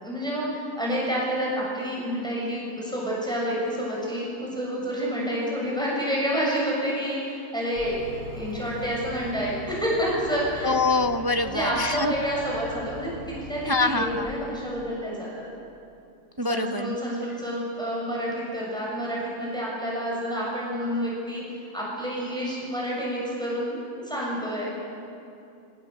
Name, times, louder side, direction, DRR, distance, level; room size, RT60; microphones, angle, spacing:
voice 1, 0.0-8.0 8.3-10.7 11.4-15.4 16.4-21.4 21.7-24.8, equal, ahead, -5 dB, 6.8 m, -29 dB
sound 1, 7.7-14.3, equal, 35° left, 6.8 m, -41 dB
voice 2, 10.6-12.1 13.7-14.3 16.4-17.0, left 3 dB, 25° right, 6 dB, 0.6 m, -25 dB
26.5 x 23.5 x 8.0 m, 2.6 s
omnidirectional pair, 1.7 m